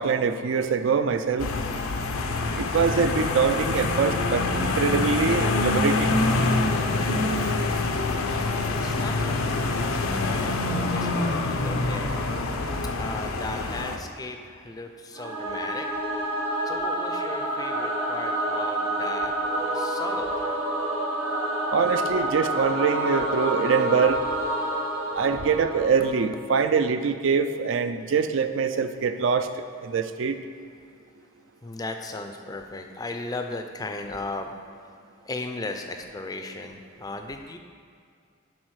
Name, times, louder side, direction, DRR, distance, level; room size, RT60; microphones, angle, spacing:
voice 1, 0.0-1.5 2.5-6.2 21.7-24.2 25.1-29.5 29.8-30.4, right 5 dB, 65° right, 9 dB, 0.4 m, -24 dB
sound 1, 1.4-14.0, left 2 dB, 90° left, 0.6 m, -26 dB
voice 2, 8.8-12.1 12.9-15.9 16.6-20.5 31.6-34.5 35.2-37.6, left 2 dB, 20° left, 5 dB, 0.4 m, -36 dB
Singing / Musical instrument, 15.1-26.4, right 1 dB, 85° right, 1.3 m, -28 dB
10.5 x 3.9 x 4.7 m, 2.3 s
head